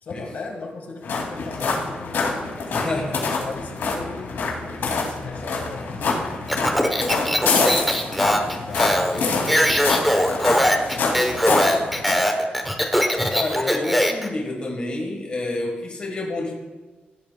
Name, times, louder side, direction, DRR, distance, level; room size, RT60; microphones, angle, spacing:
voice 1, 0.0-6.1 6.6-12.8, left 3 dB, 55° left, 2 dB, 1.6 m, -38 dB
sound 1, 1.0-12.1, left 4 dB, 85° left, 2.4 m, -26 dB
voice 2, 2.7-3.4 13.3-16.6, left 2 dB, 30° left, 0 dB, 1.4 m, -29 dB
Speech, 6.5-14.3, equal, ahead, 0.9 m, -21 dB
16.0 x 11.0 x 2.3 m, 1.3 s
wide cardioid pair, 180°, 3 cm